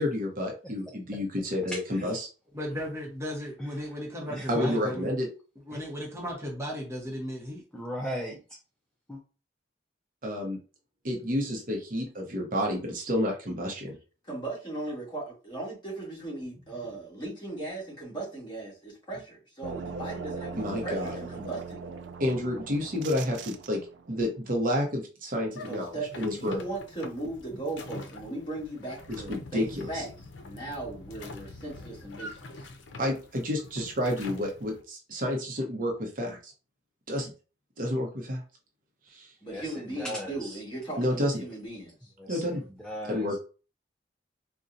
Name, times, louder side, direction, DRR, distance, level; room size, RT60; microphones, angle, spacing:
voice 1, 0.0-2.3 4.5-5.3 10.2-10.6 11.0-14.0 20.6-21.2 22.2-23.8 24.1-26.6 29.1-29.6 29.9-30.0 33.0-36.5 37.1-37.3 37.8-38.4 39.1-39.3 41.0-41.4 42.3-42.6 43.1-43.4, left 1 dB, 50° right, 1 dB, 0.8 m, -30 dB
voice 2, 1.7-2.2 3.6-3.7 4.3-4.9 5.7-5.8 7.7-8.4 9.1-9.2 39.5-40.6 42.2-43.4, equal, 5° left, -1 dB, 0.4 m, -37 dB
voice 3, 2.5-5.1 5.7-7.6, equal, 15° right, -2 dB, 0.9 m, -35 dB
voice 4, 14.3-21.8 25.7-30.1 30.4-32.5 39.4-42.1, right 2 dB, 25° left, -5 dB, 1.6 m, -37 dB
sound 1, 19.6-24.1, right 4 dB, 90° right, 0.4 m, -40 dB
sound 2, 25.5-34.8, left 2 dB, 85° left, 0.5 m, -45 dB
4.0 x 2.2 x 2.6 m, 0.35 s
head